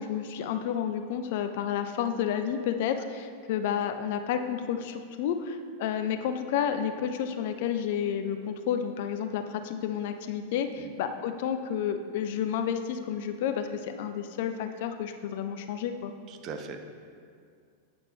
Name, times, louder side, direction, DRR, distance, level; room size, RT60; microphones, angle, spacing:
voice 1, 0.0-16.1, left 8 dB, 50° left, 7 dB, 0.4 m, -31 dB
voice 2, 16.3-16.9, right 4 dB, 35° right, 6 dB, 0.6 m, -40 dB
8.6 x 5.8 x 3.4 m, 2.2 s
figure-of-eight pair, 90°, 0 cm